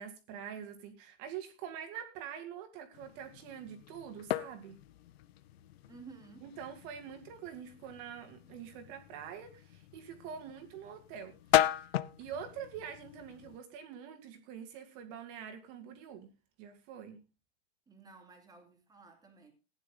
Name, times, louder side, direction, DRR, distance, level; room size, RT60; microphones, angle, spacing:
voice 1, 0.0-4.8 6.4-11.9 12.2-16.3 16.6-17.2, right 8 dB, 40° right, 2.3 m, -45 dB
sound 1, 2.9-13.6, left 13 dB, 70° left, 0.8 m, -37 dB
voice 2, 5.9-6.5 17.9-19.5, right 4 dB, 10° right, 3.1 m, -54 dB
15.5 x 10.0 x 3.7 m
supercardioid pair, 140°, 32 cm